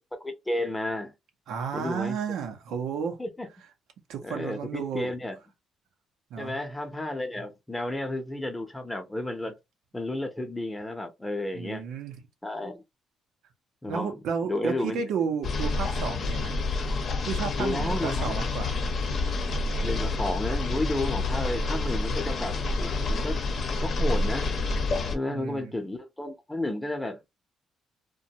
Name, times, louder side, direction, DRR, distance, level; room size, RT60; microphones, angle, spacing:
voice 1, 0.2-1.1 1.7-2.2 3.2-3.5 4.2-5.4 6.4-9.5 9.9-11.8 12.4-12.8 13.8-14.1 14.4-15.0 17.6-18.4 19.8-23.4 23.8-24.5 25.1-27.3, left 1 dB, 15° left, 0.7 m, -32 dB
voice 2, 1.5-3.2 4.1-5.1 6.3-6.6 11.5-12.2 13.9-16.5 17.2-18.7 25.3-25.7, right 6 dB, 85° right, 0.7 m, -32 dB
sound 1, 15.4-25.2, left 3 dB, 55° left, 0.7 m, -28 dB
2.5 x 2.2 x 2.8 m
cardioid pair, 90°, 0 cm